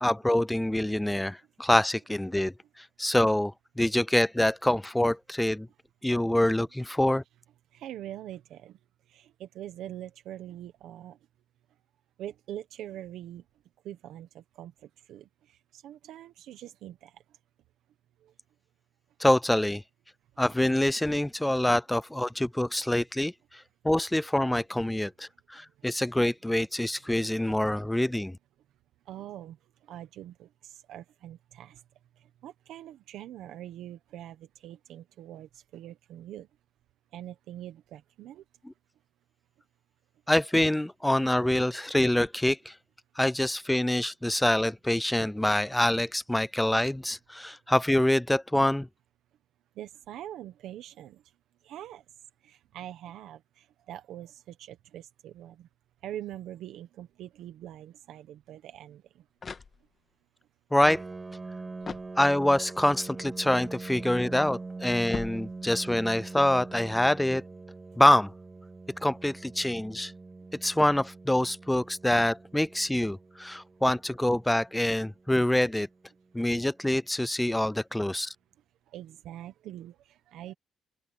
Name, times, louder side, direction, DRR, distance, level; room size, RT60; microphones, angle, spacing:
voice 1, 0.0-5.7 6.0-7.2 19.2-19.8 20.4-28.4 40.3-42.7 43.2-48.9 60.7-61.0 62.2-67.4 68.0-68.3 69.0-70.1 70.6-75.9 76.3-78.3, left 1 dB, 5° left, 0.4 m, -26 dB
voice 2, 7.7-8.7 9.1-11.2 12.2-13.4 13.8-14.3 14.6-14.7 15.1-15.2 15.7-17.1 29.1-29.6 29.9-30.3 30.7-31.7 32.4-34.4 34.6-35.5 35.7-36.5 37.1-38.4 49.8-51.2 51.7-52.0 52.5-53.4 53.9-55.5 56.0-59.0 78.9-79.9 80.3-80.5, right 12 dB, 85° right, 1.3 m, -43 dB
sound 1, 58.9-60.2 61.8-62.7 65.1-66.0, left 5 dB, 40° left, 1.7 m, -42 dB
Piano, 60.8-76.3, right 3 dB, 25° right, 4.7 m, -43 dB
open air
cardioid pair, 90°, 0 cm